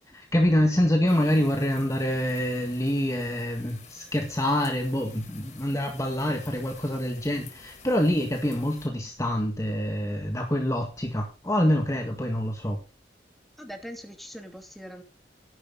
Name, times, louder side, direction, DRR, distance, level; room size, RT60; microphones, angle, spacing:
voice 1, 0.1-12.8, left 1 dB, 20° left, 3 dB, 1.8 m, -26 dB
sound 1, 1.1-8.9, left 5 dB, 40° left, 4.3 m, -50 dB
voice 2, 13.6-15.0, equal, ahead, 4 dB, 2.6 m, -41 dB
13.5 x 11.5 x 4.0 m, 0.32 s
head